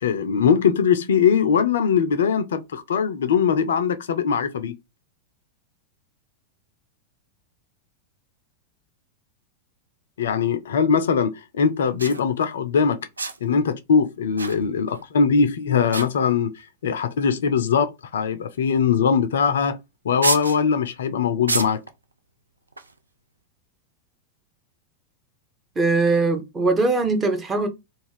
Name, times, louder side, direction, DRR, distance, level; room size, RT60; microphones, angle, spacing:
voice 1, 0.0-4.8 10.2-13.0 13.4-19.8 20.0-21.8, left 6 dB, 65° left, 0.3 m, -21 dB
sound 1, 10.6-10.7 11.7-11.8 12.0-12.2 13.2-13.6 14.4-15.0 15.3-15.5 15.9-16.6 17.4-17.5 18.7-18.9 19.2-19.3 20.2-20.6 21.5-21.9 22.7-23.0, right 3 dB, 80° right, 0.3 m, -29 dB
voice 2, 25.8-27.7, right 3 dB, 20° right, 0.7 m, -21 dB
2.4 x 2.3 x 3.2 m
figure-of-eight pair, 90°, 0 cm